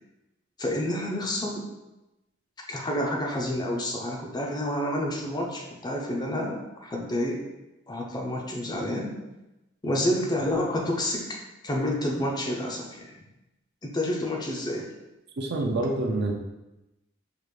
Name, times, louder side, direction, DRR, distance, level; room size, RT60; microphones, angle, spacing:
voice 1, 0.6-1.7 2.7-7.4 7.9-9.2 9.8-11.4 11.6-13.3 13.8-14.9, left 1 dB, 20° left, 0 dB, 0.5 m, -29 dB
voice 2, 15.4-16.3, right 2 dB, 55° right, 1 dB, 0.5 m, -27 dB
4.9 x 2.5 x 3.2 m, 0.96 s
head